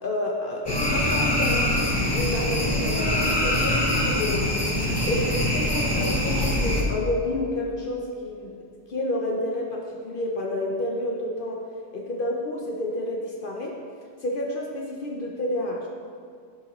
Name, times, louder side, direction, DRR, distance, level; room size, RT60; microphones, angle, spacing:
voice 1, 0.0-4.5 5.1-8.5 8.9-11.6 11.9-13.8 14.2-15.9, left 1 dB, 55° left, 0 dB, 0.8 m, -29 dB
sound 1, 0.7-6.8, left 1 dB, 25° left, 0.9 m, -24 dB
11.0 x 4.9 x 3.0 m, 2.2 s
omnidirectional pair, 1.1 m